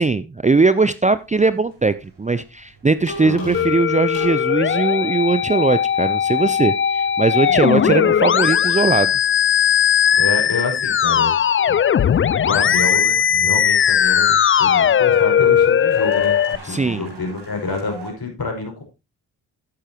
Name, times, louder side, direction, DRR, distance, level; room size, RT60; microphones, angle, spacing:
voice 1, 0.0-9.1 16.6-17.1, right 3 dB, 15° right, 14 dB, 0.6 m, -19 dB
sound 1, 1.0-18.1, right 3 dB, 60° right, 4.6 m, -46 dB
sound 2, 3.1-5.0 5.5-6.3 6.7-7.4 7.7-9.0 10.3-11.1 11.6-17.8, left 1 dB, 80° left, 4.1 m, -40 dB
voice 2, 3.2-3.7 7.5-7.9 10.2-11.3 11.7-11.8 12.4-18.8, left 3 dB, 50° left, 2 dB, 5.2 m, -28 dB
Musical instrument, 3.5-16.6, left 9 dB, 30° left, 0.4 m, -18 dB
12.0 x 8.9 x 2.9 m, 0.26 s
supercardioid pair, 40°, 45 cm